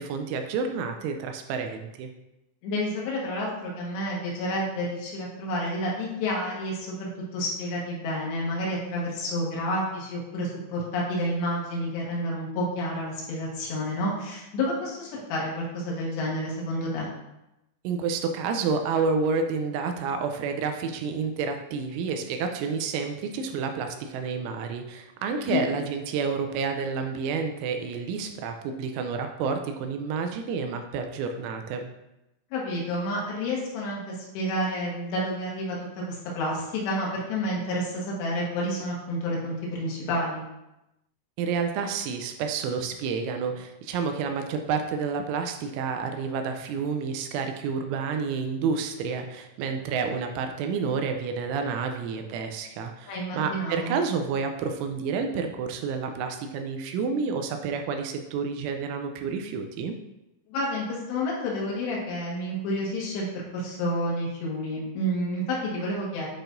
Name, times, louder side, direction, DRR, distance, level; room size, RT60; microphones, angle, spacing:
voice 1, 0.0-2.1 17.8-31.9 41.4-60.0, right 5 dB, 85° right, 5 dB, 2.9 m, -29 dB
voice 2, 2.6-17.1 25.4-25.7 32.5-35.8 36.1-40.4 53.1-54.0 60.5-66.3, left 1 dB, 70° left, -4 dB, 3.4 m, -30 dB
9.8 x 4.4 x 2.6 m, 0.92 s
omnidirectional pair, 5.6 m